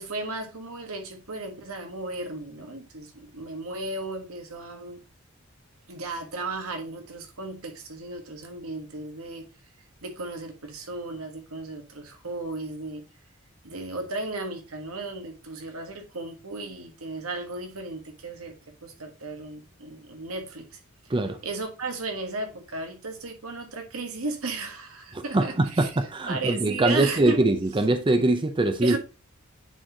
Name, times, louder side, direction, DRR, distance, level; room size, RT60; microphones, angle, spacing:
voice 1, 0.0-5.0 5.9-9.4 10.0-13.0 13.6-18.5 18.8-20.8 21.4-25.9 26.3-27.4 28.8-29.0, right 2 dB, 85° right, 1.4 m, -35 dB
voice 2, 25.1-29.0, right 2 dB, 25° right, 0.6 m, -23 dB
8.9 x 4.1 x 2.8 m
head